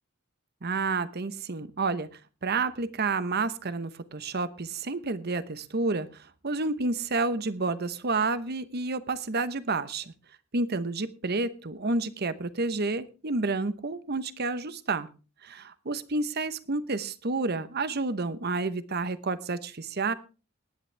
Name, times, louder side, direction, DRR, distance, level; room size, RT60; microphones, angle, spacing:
voice 1, 0.6-2.1 2.4-6.1 6.4-10.1 10.5-15.1 15.4-20.1, right 3 dB, 50° right, 14 dB, 1.0 m, -30 dB
19.0 x 10.5 x 3.4 m, 0.33 s
head